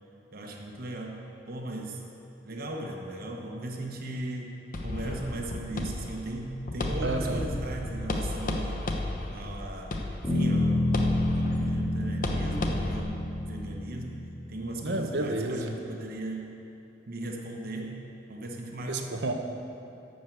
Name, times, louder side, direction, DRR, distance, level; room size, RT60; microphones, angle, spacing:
voice 1, 0.3-2.0 2.4-4.5 4.8-8.8 9.3-16.5 17.1-18.0 18.3-19.0, right 1 dB, 55° right, 1 dB, 1.1 m, -37 dB
sound 1, 4.7-13.0, left 1 dB, 50° left, 0.9 m, -34 dB
voice 2, 7.0-7.4 14.8-15.8 18.9-19.3, right 2 dB, 80° right, 5 dB, 0.9 m, -30 dB
Bass guitar, 10.2-14.6, left 1 dB, 20° left, 2.5 m, -28 dB
12.0 x 5.4 x 8.0 m, 2.8 s
head